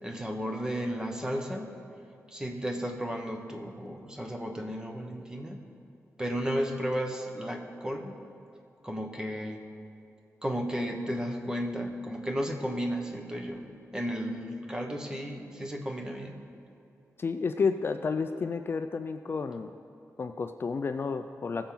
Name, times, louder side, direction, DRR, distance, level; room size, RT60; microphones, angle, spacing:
voice 1, 0.0-1.7 2.3-5.6 6.2-8.2 8.8-9.6 10.4-13.6 13.9-16.4, equal, 15° right, 2 dB, 1.1 m, -33 dB
voice 2, 17.2-19.7 20.2-21.7, left 5 dB, 45° left, 8 dB, 0.4 m, -31 dB
20.5 x 7.1 x 3.9 m, 2.6 s
wide cardioid pair, 150°, 6 cm